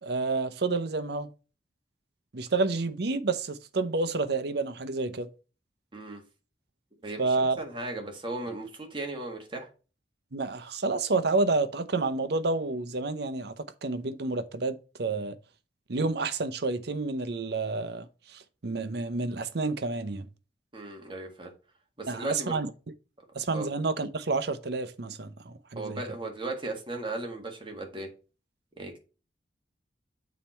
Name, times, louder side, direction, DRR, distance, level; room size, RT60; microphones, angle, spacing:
voice 1, 0.0-1.3 2.3-5.3 7.2-7.6 10.3-15.3 15.9-18.1 18.3-20.3 22.1-22.7 23.3-26.0, right 3 dB, 65° right, 0.7 m, -29 dB
voice 2, 7.0-9.7 20.7-21.5 22.0-22.6 23.5-23.7 25.7-28.1 28.8-29.0, right 2 dB, 30° right, 1.7 m, -36 dB
7.3 x 4.3 x 4.5 m
head